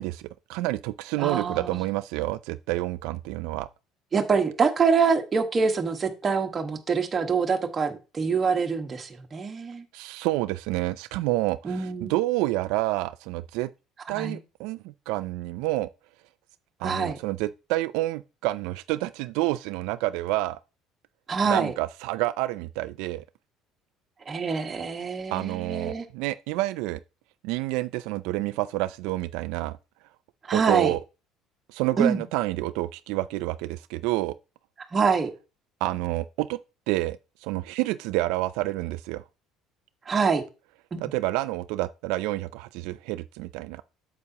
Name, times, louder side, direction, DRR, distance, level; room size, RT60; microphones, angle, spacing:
voice 1, 0.0-3.7 9.9-13.7 14.1-15.9 16.8-20.6 21.4-23.2 25.3-27.0 27.4-29.8 30.5-31.0 31.7-34.3 35.8-36.6 36.9-39.2 41.0-43.8, right 18 dB, 80° right, 0.3 m, -28 dB
voice 2, 1.2-1.8 4.1-9.8 11.6-12.1 14.1-14.4 16.8-17.2 21.3-21.7 24.3-26.1 30.4-30.9 32.0-32.2 34.9-35.3 40.0-40.4 40.9-41.1, right 5 dB, 25° right, 1.3 m, -25 dB
8.6 x 6.9 x 2.8 m
cardioid pair, 145°, 0 cm